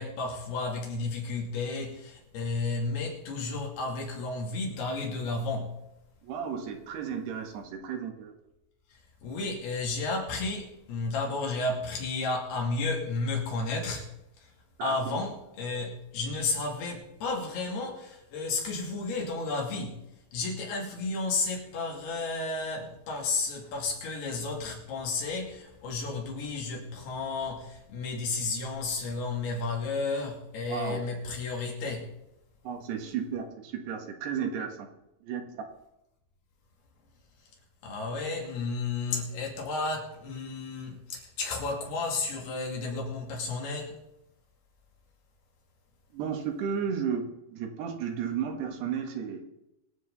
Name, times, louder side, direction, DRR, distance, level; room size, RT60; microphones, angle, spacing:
voice 1, 0.0-5.8 8.9-14.1 14.4-14.5 14.8-20.0 20.3-32.1 37.8-44.0, left 3 dB, 75° left, 4.6 m, -32 dB
voice 2, 6.2-8.4 14.8-15.2 30.7-31.0 32.6-34.9 35.2-35.4 46.1-49.5, right 7 dB, 85° right, 3.6 m, -33 dB
24.0 x 8.0 x 4.0 m
omnidirectional pair, 4.6 m